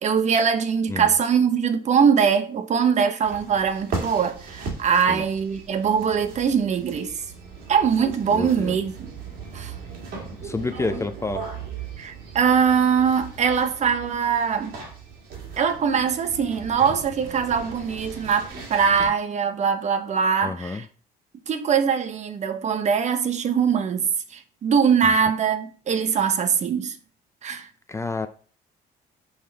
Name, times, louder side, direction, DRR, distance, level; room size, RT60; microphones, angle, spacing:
voice 1, 0.0-7.2 7.7-9.1 9.5-9.7 12.0-14.8 15.6-20.9 21.5-26.9 27.4-27.7, right 7 dB, 45° right, 0.7 m, -22 dB
sound 1, 3.2-19.1, right 4 dB, 65° right, 1.9 m, -38 dB
voice 2, 8.3-8.8 10.4-11.5 20.4-20.8 27.9-28.3, left 3 dB, 15° left, 0.4 m, -29 dB
5.6 x 4.9 x 3.4 m
cardioid pair, 110°, 17 cm